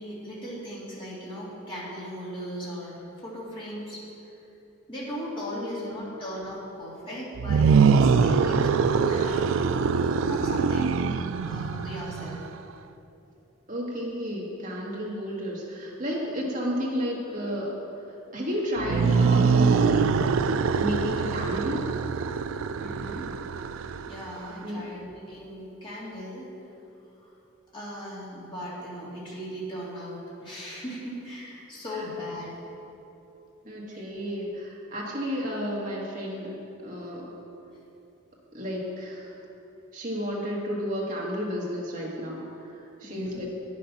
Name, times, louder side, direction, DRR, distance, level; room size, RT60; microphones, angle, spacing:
voice 1, 0.0-4.0 4.9-9.5 10.2-11.1 11.4-12.5 22.8-23.2 24.1-26.5 27.2-27.3 27.7-32.6 33.9-34.0 43.0-43.4, equal, 25° left, -7 dB, 2.2 m, -38 dB
voice 2, 5.5-6.1 13.7-18.0 18.3-20.0 20.4-20.5 20.7-21.9 24.6-24.8 31.9-32.1 33.6-36.6 36.8-37.3 38.5-39.4 39.9-43.5, equal, 40° right, -4 dB, 1.8 m, -32 dB
sound 1, 7.4-12.5 18.8-24.4, right 5 dB, 65° right, 0.3 m, -23 dB
9.5 x 6.5 x 5.6 m, 2.9 s
head